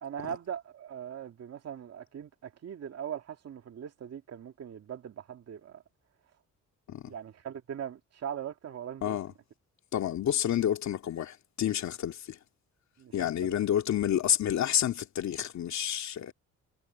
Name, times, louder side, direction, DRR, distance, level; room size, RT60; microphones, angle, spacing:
voice 1, 0.0-5.8 7.1-9.2 13.0-13.5, right 9 dB, 55° right, 2.2 m, -40 dB
voice 2, 9.0-9.3 9.9-12.4 13.1-16.3, left 10 dB, 65° left, 2.7 m, -29 dB
cardioid pair, 90°, 30 cm